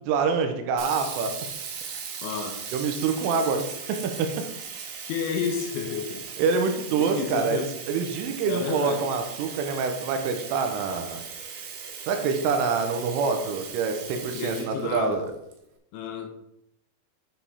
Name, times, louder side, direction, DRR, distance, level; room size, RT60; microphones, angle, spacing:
voice 1, 0.1-1.3 2.7-4.3 6.4-11.2 12.1-15.3, right 5 dB, 90° right, 6 dB, 3.3 m, -26 dB
Sink (filling or washing), 0.8-15.5, right 6 dB, 75° right, 2.3 m, -38 dB
voice 2, 2.2-2.5 5.0-6.2 7.0-7.7 8.5-9.0 14.3-15.2 15.9-16.3, left 6 dB, 80° left, 4 dB, 2.9 m, -31 dB
9.6 x 5.8 x 3.5 m, 0.82 s
omnidirectional pair, 5.8 m